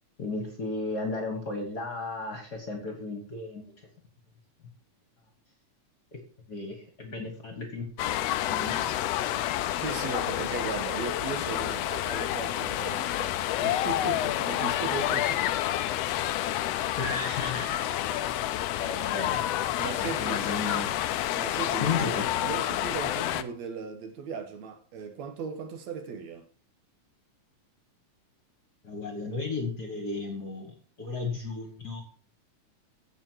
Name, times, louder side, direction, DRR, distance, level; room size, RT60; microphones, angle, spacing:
voice 1, 0.2-3.6 6.1-6.2 6.5-7.9 8.5-8.8 17.0-17.9 18.3-18.4 18.8-19.7 20.0-21.0 21.8-22.2 28.8-32.0, left 3 dB, 40° left, 1.7 m, -34 dB
sound 1, 8.0-23.4, left 13 dB, 85° left, 1.4 m, -29 dB
voice 2, 9.8-15.5 15.8-16.2 19.8-20.4 21.4-26.5, right 6 dB, 65° right, 2.2 m, -37 dB
15.5 x 5.6 x 4.6 m
omnidirectional pair, 3.5 m